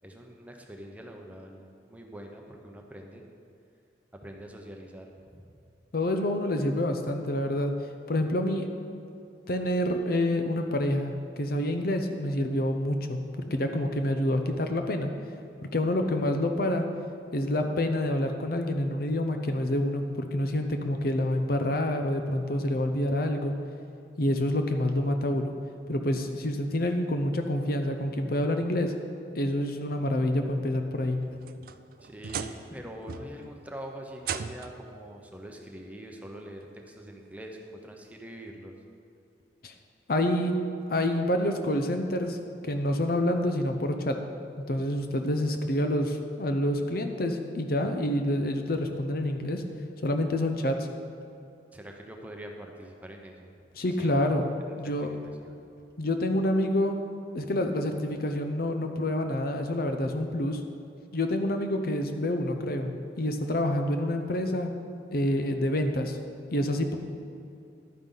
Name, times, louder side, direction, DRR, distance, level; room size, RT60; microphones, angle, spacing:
voice 1, 0.0-3.2 4.1-5.6 32.0-38.7 51.7-53.5 54.0-54.1 54.8-55.6, equal, 10° right, 1 dB, 0.8 m, -44 dB
voice 2, 5.9-7.7 8.1-8.7 9.5-13.2 13.5-15.1 15.6-16.9 17.3-23.5 24.2-25.5 25.9-28.9 29.3-31.2 39.6-39.7 40.1-40.5 40.9-42.4 42.6-44.2 44.7-49.6 50.0-50.9 53.8-54.5 54.8-55.1 56.0-57.0 57.3-60.6 61.1-62.9 63.2-64.7 65.1-66.2 66.5-67.0, left 1 dB, 55° left, 5 dB, 0.7 m, -27 dB
sound 1, 31.2-32.8 33.1-33.5 34.2-34.9 36.1-36.2 36.8-36.9 38.5-38.6, right 7 dB, 50° right, 0.4 m, -37 dB
11.5 x 9.4 x 3.9 m, 2.6 s
head